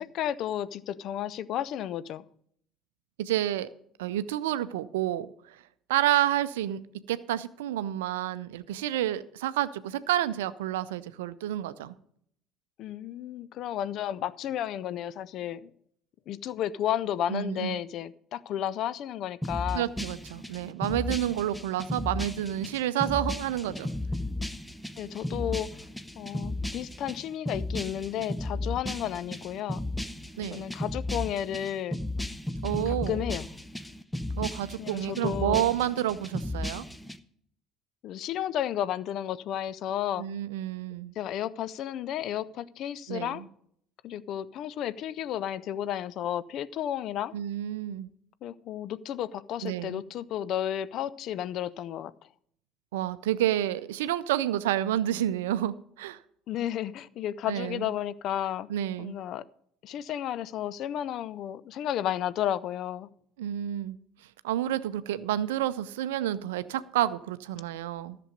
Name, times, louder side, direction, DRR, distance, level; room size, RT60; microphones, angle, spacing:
voice 1, 0.0-2.2 12.8-15.7 16.3-19.9 25.0-25.7 26.2-29.8 30.5-32.0 32.7-33.5 34.8-35.7 38.0-40.3 41.2-43.4 44.0-47.3 48.4-52.1 56.5-58.7 59.0-59.4 59.8-63.1, left 11 dB, 50° left, 0.4 m, -32 dB
voice 2, 3.2-3.7 4.0-5.6 5.9-6.8 7.1-12.0 17.3-17.8 19.7-23.9 30.4-30.6 32.6-33.2 34.4-36.8 40.2-41.1 43.1-43.5 47.3-48.1 49.6-50.0 52.9-56.2 57.5-57.9 58.7-59.2 63.4-64.0 64.4-68.2, right 12 dB, 70° right, 0.5 m, -29 dB
sound 1, 19.4-37.2, left 1 dB, 5° left, 0.7 m, -35 dB
13.5 x 6.8 x 5.2 m
figure-of-eight pair, 55°, 0 cm